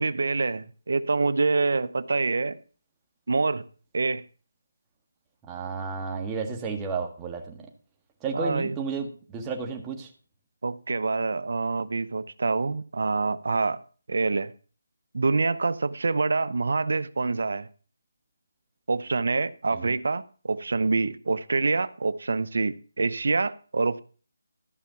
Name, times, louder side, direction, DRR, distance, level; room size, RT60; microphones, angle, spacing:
voice 1, 0.0-2.6 3.3-3.6 3.9-4.2 8.3-8.8 10.6-13.8 14.1-14.5 15.1-17.7 18.9-24.0, right 3 dB, 70° right, 0.7 m, -26 dB
voice 2, 5.5-7.7 8.2-10.1 19.7-19.9, right 5 dB, 15° right, 1.7 m, -32 dB
13.5 x 5.7 x 6.9 m
figure-of-eight pair, 165°, 0 cm